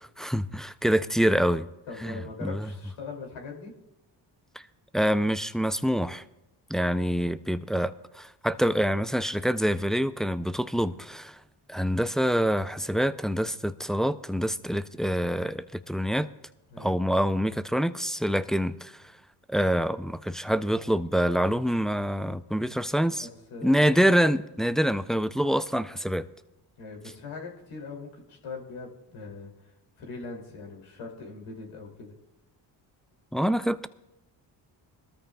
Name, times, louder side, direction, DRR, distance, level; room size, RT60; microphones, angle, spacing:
voice 1, 0.2-1.7 2.0-2.7 4.6-4.7 4.9-6.2 6.7-11.4 11.7-16.3 16.8-19.0 19.5-23.3 23.6-26.3 33.3-33.9, equal, ahead, 13 dB, 0.4 m, -26 dB
voice 2, 1.9-3.7 16.7-16.9 23.2-24.0 26.8-32.2, left 4 dB, 70° left, 0 dB, 2.8 m, -41 dB
21.5 x 13.5 x 2.3 m, 0.96 s
supercardioid pair, 55°, 50 cm